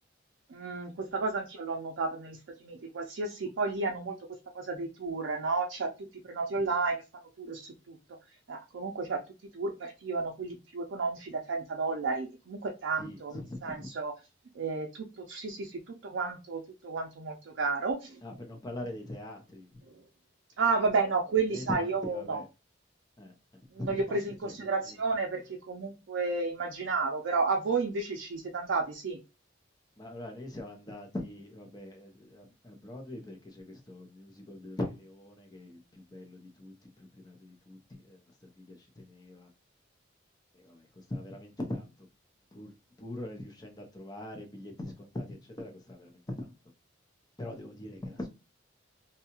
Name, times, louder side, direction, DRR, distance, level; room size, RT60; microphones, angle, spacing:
voice 1, 0.5-4.1 4.5-5.9 6.2-7.0 7.4-8.0 8.5-9.2 9.5-14.1 14.6-18.2 20.6-22.4 23.8-29.2, right 4 dB, 75° right, 0.4 m, -32 dB
voice 2, 13.0-13.9 18.2-19.8 21.5-22.5 23.2-23.3 23.8-25.0 30.0-39.5 40.5-42.1 42.5-42.7 43.0-46.5 47.4-48.3, left 1 dB, 20° left, 0.6 m, -42 dB
2.7 x 2.3 x 2.8 m
head